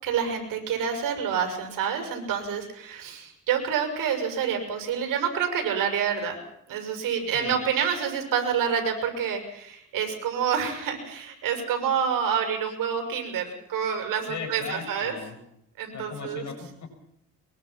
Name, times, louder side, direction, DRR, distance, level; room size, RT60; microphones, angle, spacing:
voice 1, 0.0-6.4 6.7-15.2 15.8-16.5, right 7 dB, 85° right, 5 dB, 6.7 m, -28 dB
voice 2, 14.3-15.4 15.9-16.9, left 5 dB, 60° left, 4 dB, 7.3 m, -38 dB
23.5 x 22.5 x 6.1 m, 0.73 s
cardioid pair, 110°, 32 cm